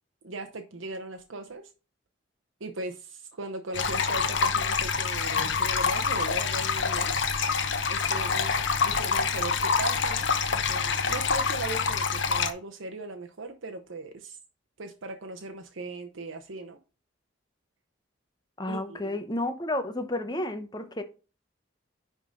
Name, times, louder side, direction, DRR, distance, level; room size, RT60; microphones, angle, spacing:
voice 1, 0.2-1.6 2.6-7.3 7.9-14.4 14.8-16.8 18.7-19.2, right 2 dB, 85° right, 0.8 m, -38 dB
sound 1, 3.7-12.5, left 5 dB, 70° left, 0.9 m, -26 dB
voice 2, 18.6-21.0, left 1 dB, 20° left, 0.8 m, -31 dB
10.0 x 3.8 x 3.9 m
head